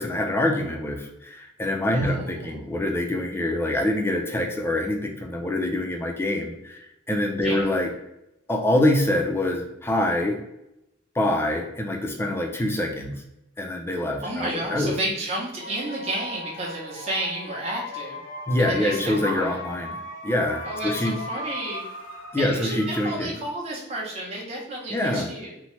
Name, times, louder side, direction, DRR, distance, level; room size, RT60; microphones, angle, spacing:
voice 1, 0.0-7.9 8.5-10.4 11.2-13.1 13.6-14.9 18.5-20.0 20.2-21.2 22.3-23.3 24.9-25.3, left 1 dB, 10° left, 2 dB, 0.4 m, -25 dB
voice 2, 1.9-2.6 7.4-7.6 14.2-18.2 18.6-19.6 20.6-21.8 22.4-25.5, right 1 dB, 35° right, -4 dB, 0.7 m, -31 dB
sound 1, 15.6-23.7, left 2 dB, 75° left, 0.6 m, -38 dB
2.8 x 2.1 x 3.0 m, 0.85 s
head